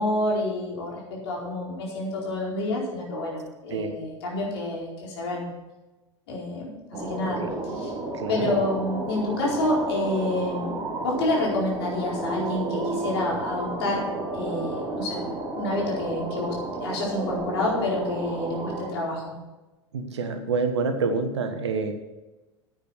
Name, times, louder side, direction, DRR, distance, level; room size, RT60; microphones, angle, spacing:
voice 1, 0.0-5.5 6.3-7.9 8.3-10.8 11.0-14.1 14.3-16.5 16.8-19.3, left 1 dB, 60° left, -3 dB, 4.6 m, -28 dB
sound 1, 6.9-18.9, right 2 dB, 30° right, 3.0 m, -32 dB
voice 2, 8.1-8.6 19.9-21.9, right 4 dB, 70° right, 7 dB, 1.4 m, -27 dB
10.0 x 9.0 x 6.0 m, 1.1 s
figure-of-eight pair, 80°, 15 cm